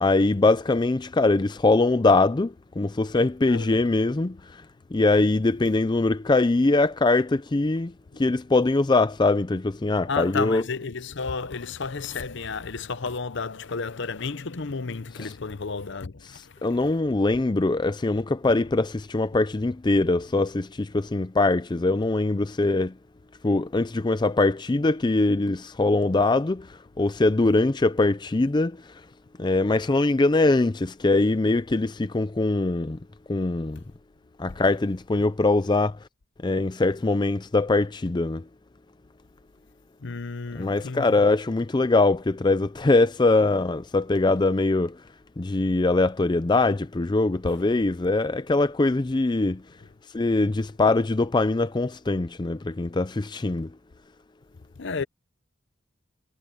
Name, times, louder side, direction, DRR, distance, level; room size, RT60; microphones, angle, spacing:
voice 1, 0.0-4.6 4.9-10.6 15.2-15.3 16.3-22.9 23.4-28.8 29.4-33.0 33.3-33.8 34.4-36.0 36.4-38.4 40.5-45.0 45.4-49.6 50.1-53.7, left 2 dB, 20° left, 0.4 m, -22 dB
voice 2, 3.5-3.8 8.1-8.2 10.1-16.7 34.5-34.6 40.0-41.2 54.8-55.0, left 4 dB, 60° left, 0.8 m, -32 dB
head